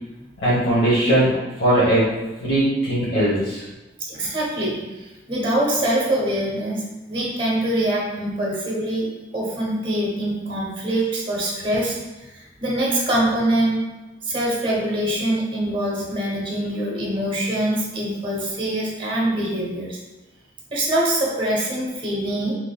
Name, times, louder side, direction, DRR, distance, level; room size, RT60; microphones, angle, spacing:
voice 1, 0.4-2.1 2.4-3.6, right 1 dB, 80° left, -11 dB, 1.1 m, -19 dB
voice 2, 4.1-4.8 5.3-6.8 7.1-9.1 9.3-12.0 12.6-13.8 14.3-20.0 20.7-22.5, right 1 dB, 30° right, -4 dB, 0.8 m, -23 dB
3.5 x 3.0 x 2.3 m, 1.1 s
head